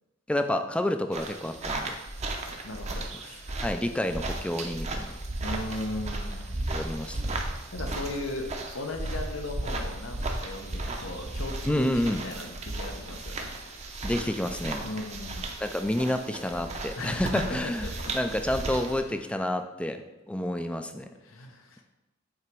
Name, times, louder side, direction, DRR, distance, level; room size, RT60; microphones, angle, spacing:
voice 1, 0.3-2.0 3.6-5.1 6.7-7.4 11.7-12.2 14.0-14.8 15.6-20.0 20.3-21.1, left 1 dB, 5° left, 7 dB, 0.3 m, -29 dB
sound 1, 1.1-19.0, right 2 dB, 35° right, 0.6 m, -35 dB
voice 2, 2.6-3.6 5.4-6.5 7.7-8.5 8.7-13.9 14.8-15.5 17.0-18.1 19.1-19.2 21.2-21.8, left 2 dB, 80° left, 4 dB, 0.8 m, -37 dB
7.5 x 3.0 x 4.5 m, 1.0 s
head